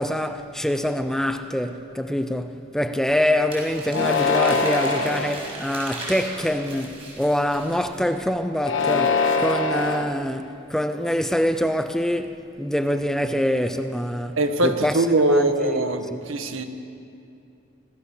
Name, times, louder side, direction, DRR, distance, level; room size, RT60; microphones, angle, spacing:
voice 1, 0.0-14.4 14.6-15.8 16.1-16.2, equal, ahead, 0.7 m, -25 dB
Crumpling crinkling, 3.5-8.1, right 2 dB, 30° right, 6.6 m, -37 dB
sound 1, 3.9-5.4 6.1-6.6 8.6-10.1, left 4 dB, 75° left, 1.8 m, -23 dB
voice 2, 14.4-16.6, right 2 dB, 85° right, 1.7 m, -21 dB
26.0 x 16.5 x 6.8 m
head